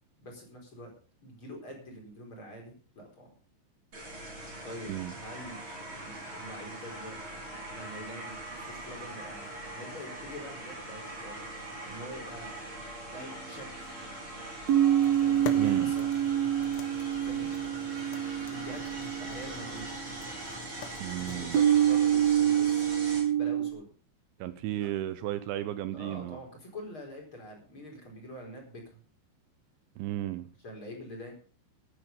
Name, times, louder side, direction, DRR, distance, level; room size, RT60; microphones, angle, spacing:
voice 1, 0.2-0.9 1.2-3.3 4.6-5.6 5.9-7.4 7.7-9.5 9.7-11.4 11.8-12.5 13.1-14.0 15.2-16.1 17.2-17.5 18.5-19.9 21.3-23.9 24.8-24.9 25.9-29.0 30.6-31.3, equal, 25° left, 4.7 m, -45 dB
sound 1, 3.9-23.2, right 1 dB, 25° right, 5.7 m, -42 dB
sound 2, 13.2-13.3 14.7-20.1 21.5-23.7, right 10 dB, 60° right, 3.1 m, -26 dB
sound 3, 14.9-21.9, left 8 dB, 80° left, 4.0 m, -46 dB
voice 2, 15.6-15.9 21.0-21.6 24.4-26.4 30.0-30.5, right 13 dB, 80° right, 3.1 m, -34 dB
15.0 x 11.0 x 5.4 m
omnidirectional pair, 5.5 m